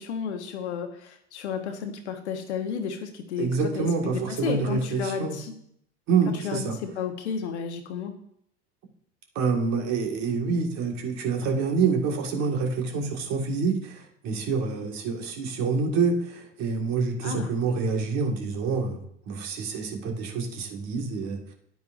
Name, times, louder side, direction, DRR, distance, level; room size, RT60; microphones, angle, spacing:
voice 1, 0.0-3.5 3.7-5.5 6.4-8.1 17.2-17.5, left 7 dB, 80° left, 6 dB, 1.3 m, -32 dB
voice 2, 3.4-5.4 6.1-6.8 9.4-19.0 19.3-21.5, right 5 dB, 55° right, 1 dB, 1.9 m, -27 dB
10.5 x 9.1 x 2.6 m, 0.71 s
hypercardioid pair, 75°, 34 cm